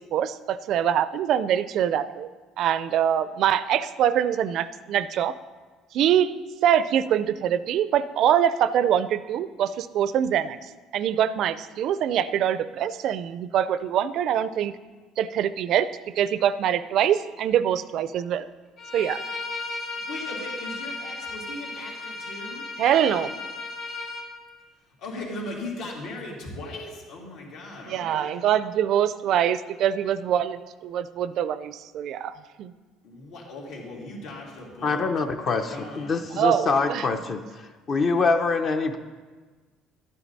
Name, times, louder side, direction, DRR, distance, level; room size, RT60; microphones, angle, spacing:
voice 1, 0.1-2.3 2.6-5.3 5.9-6.3 6.6-10.6 10.9-14.7 15.2-15.9 16.2-18.5 18.9-19.2 22.8-23.3 27.9-32.3 32.6-32.7 36.4-37.0, right 9 dB, 55° right, 15 dB, 0.4 m, -24 dB
Bowed string instrument, 18.8-24.3, left 3 dB, 55° left, 2.4 m, -35 dB
voice 2, 19.9-22.6 24.8-28.3 33.0-35.1 35.4-36.2, left 2 dB, 75° left, -2 dB, 2.8 m, -38 dB
voice 3, 34.8-39.0, left 4 dB, 35° left, 6 dB, 0.6 m, -25 dB
12.0 x 9.2 x 4.1 m, 1.4 s
cardioid pair, 135°, 0 cm